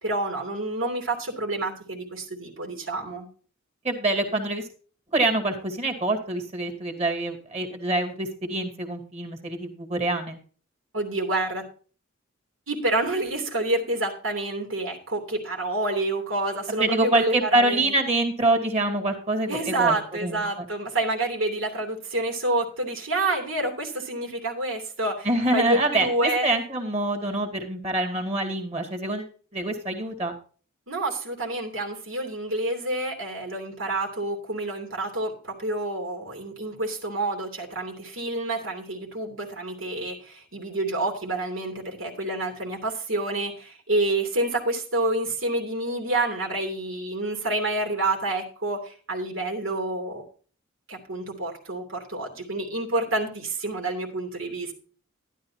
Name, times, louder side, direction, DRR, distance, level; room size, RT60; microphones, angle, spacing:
voice 1, 0.0-3.3 10.9-11.6 12.7-17.9 19.5-25.3 25.5-26.5 30.9-50.2 50.9-54.7, right 2 dB, 80° right, 1 dB, 2.9 m, -28 dB
voice 2, 3.8-4.6 5.1-10.4 16.7-20.6 25.2-30.3, right 2 dB, 30° right, 5 dB, 2.3 m, -25 dB
12.5 x 11.5 x 2.8 m, 0.41 s
head